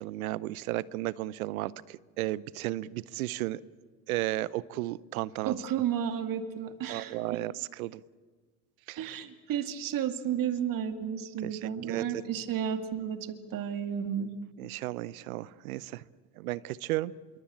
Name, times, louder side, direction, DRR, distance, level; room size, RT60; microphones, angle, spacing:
voice 1, 0.0-3.6 4.1-5.5 6.9-8.0 8.9-9.2 11.4-11.6 11.9-12.2 14.6-16.0 16.4-17.1, right 16 dB, 80° right, 22 dB, 0.8 m, -34 dB
voice 2, 5.4-7.4 9.0-14.3, right 9 dB, 50° right, 9 dB, 2.4 m, -32 dB
26.0 x 23.5 x 8.8 m, 1.5 s
hypercardioid pair, 70°, 42 cm